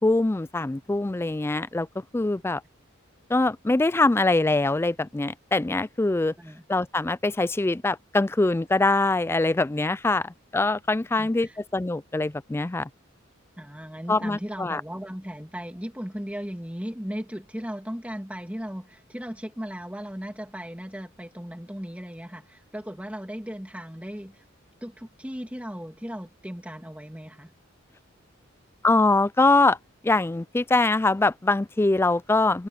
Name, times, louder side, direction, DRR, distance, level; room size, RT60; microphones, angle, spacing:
voice 1, 0.0-1.9 2.1-2.6 3.3-6.3 6.7-12.9 14.1-14.8 28.8-29.8 30.0-32.7, left 2 dB, 10° left, 0.3 m, -23 dB
voice 2, 11.2-11.6 13.6-24.4 24.8-27.5, equal, 5° right, 2.6 m, -37 dB
head